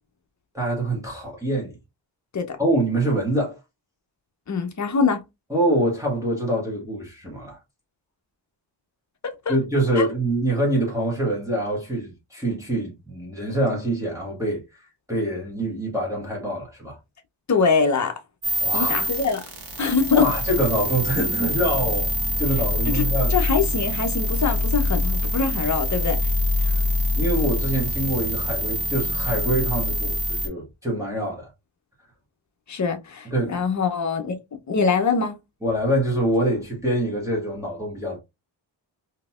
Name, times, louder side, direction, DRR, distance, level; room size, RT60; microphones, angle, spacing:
voice 1, 0.5-1.8 2.6-3.6 5.5-7.6 9.5-14.8 15.1-17.0 18.6-19.1 20.1-22.1 22.4-23.4 27.2-31.5 33.3-33.6 35.6-38.2, right 1 dB, 5° right, 1.3 m, -25 dB
voice 2, 4.5-5.2 9.2-9.6 10.0-10.1 17.5-18.2 18.7-19.4 19.8-20.3 22.9-26.2 26.6-26.8 32.7-34.4 34.7-35.3, left 5 dB, 40° left, 0.8 m, -23 dB
sound 1, 18.4-30.5, left 1 dB, 55° right, 1.3 m, -25 dB
3.8 x 2.9 x 2.4 m
wide cardioid pair, 110°, 46 cm